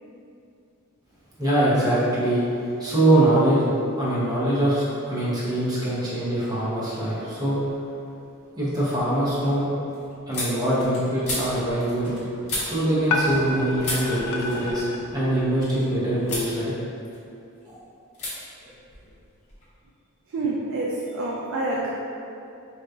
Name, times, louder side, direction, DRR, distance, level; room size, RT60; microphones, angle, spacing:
voice 1, 1.4-2.4 2.8-3.7 4.0-7.6 8.6-9.7 10.3-12.1 12.6-14.8 15.1-16.7 17.7-17.8, right 1 dB, 15° right, -9 dB, 0.7 m, -23 dB
sound 1, 7.6-8.1 8.5-13.5 13.8-15.8 16.2-16.5 16.9-17.6 18.1-18.3 18.6-19.7, left 2 dB, 30° left, 0.7 m, -35 dB
sound 2, 10.8-11.0 12.0-12.2 13.3-13.5 14.5-14.7, equal, 75° right, 1.0 m, -39 dB
sound 3, 11.2-16.4, left 2 dB, 85° left, 0.4 m, -32 dB
voice 2, 20.3-21.9, right 2 dB, 60° right, -4 dB, 0.3 m, -27 dB
3.7 x 2.7 x 2.3 m, 2.6 s
head